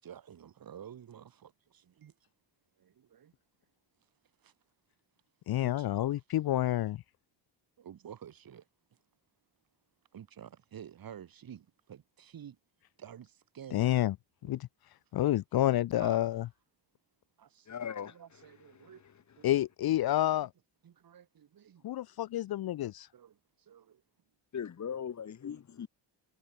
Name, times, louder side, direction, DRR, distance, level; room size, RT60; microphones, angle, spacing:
voice 1, 0.0-2.1 2.8-3.3 4.4-4.5 5.6-5.9 7.8-8.6 10.1-12.6 13.0-14.0 14.4-14.7 16.0-16.2 17.4-17.7 18.1-19.0 19.4-19.7 20.4-20.5 20.8-21.8 22.4-22.5 23.1-24.0, right 9 dB, 50° right, 5.8 m, -51 dB
voice 2, 5.5-7.0 13.7-14.1 14.5-14.6 15.1-16.4 19.4-20.5 21.8-23.1, left 13 dB, 55° left, 0.6 m, -29 dB
voice 3, 17.7-18.1 18.7-18.9 24.5-25.9, left 8 dB, 40° left, 2.6 m, -39 dB
wide cardioid pair, 175°, 44 cm